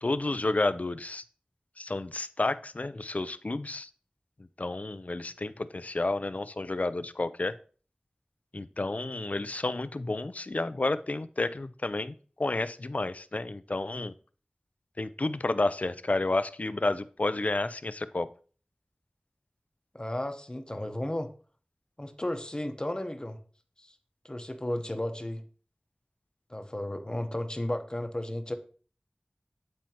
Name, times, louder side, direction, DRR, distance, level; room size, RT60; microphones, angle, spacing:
voice 1, 0.0-1.2 1.8-3.9 4.6-7.6 8.5-14.1 15.0-18.3, left 2 dB, 55° left, 14 dB, 0.4 m, -31 dB
voice 2, 19.9-21.3 22.0-23.4 23.8-23.9 24.2-25.4 26.5-28.6, left 1 dB, 30° left, 7 dB, 0.8 m, -34 dB
9.2 x 4.3 x 2.9 m, 0.41 s
wide cardioid pair, 40°, 3 cm